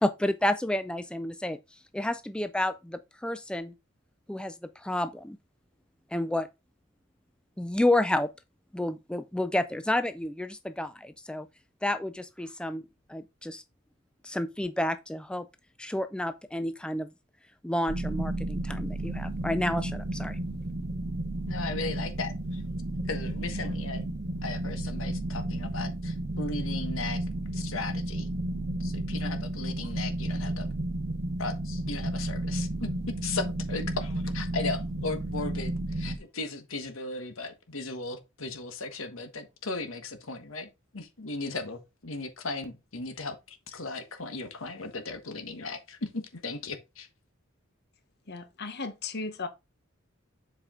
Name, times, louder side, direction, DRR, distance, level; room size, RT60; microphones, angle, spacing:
voice 1, 0.0-1.6 1.9-3.7 4.3-5.4 6.1-6.5 7.6-8.3 8.7-11.5 11.8-12.8 13.1-13.6 14.2-15.5 15.8-17.1 17.6-20.4, left 1 dB, 5° left, 0.4 m, -30 dB
sound 1, 17.9-36.2, right 1 dB, 55° right, 1.0 m, -32 dB
voice 2, 21.5-22.6 23.1-24.0 24.4-27.2 27.5-28.3 28.8-30.7 31.4-40.7 40.9-47.1, left 3 dB, 75° left, 1.3 m, -36 dB
voice 3, 48.3-49.5, left 4 dB, 55° left, 1.1 m, -36 dB
7.5 x 4.8 x 3.7 m
head